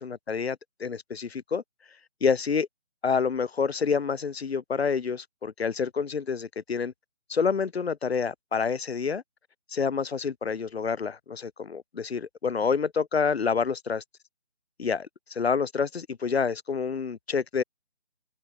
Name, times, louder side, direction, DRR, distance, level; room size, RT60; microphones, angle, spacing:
voice 1, 0.0-1.6 2.2-2.7 3.0-6.9 7.3-9.2 9.7-14.0 14.8-17.6, left 5 dB, 60° left, 1.1 m, -28 dB
open air
figure-of-eight pair, 160°, 35 cm